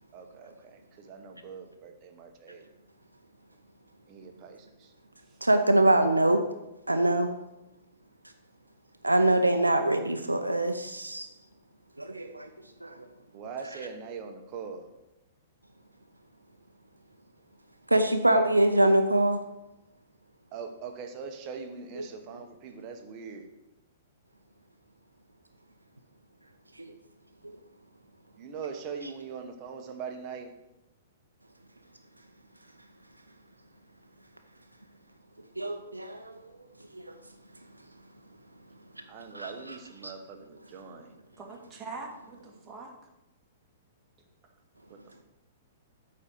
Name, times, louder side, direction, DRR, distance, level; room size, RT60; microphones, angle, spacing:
voice 1, 0.1-2.6 4.1-4.9 13.3-14.9 20.5-23.5 28.4-30.5 39.1-41.1 44.9-45.0, right 5 dB, 35° right, 4 dB, 1.2 m, -42 dB
voice 2, 5.4-6.4 6.9-7.3 9.0-11.3 12.0-12.5 12.8-12.9 17.9-19.4 22.0-22.1 27.4-27.6 35.6-36.3 36.9-37.1 39.3-39.5 40.0-40.1, right 1 dB, 85° right, 7 dB, 0.6 m, -24 dB
voice 3, 41.4-42.9, right 3 dB, 20° right, -1 dB, 1.9 m, -42 dB
8.7 x 4.3 x 6.7 m, 0.95 s
figure-of-eight pair, 110°, 0 cm